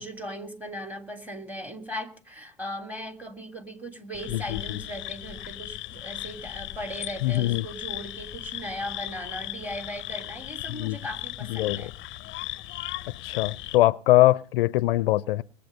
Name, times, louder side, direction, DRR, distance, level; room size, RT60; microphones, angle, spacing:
voice 1, 0.0-11.9, equal, 5° right, 3.0 m, -38 dB
sound 1, 4.1-13.8, left 16 dB, 40° left, 0.7 m, -37 dB
voice 2, 4.3-4.8 7.2-7.7 10.8-11.0 11.5-11.8 13.2-15.4, left 16 dB, 75° left, 0.6 m, -22 dB
21.0 x 8.5 x 6.7 m
hypercardioid pair, 90°, 29 cm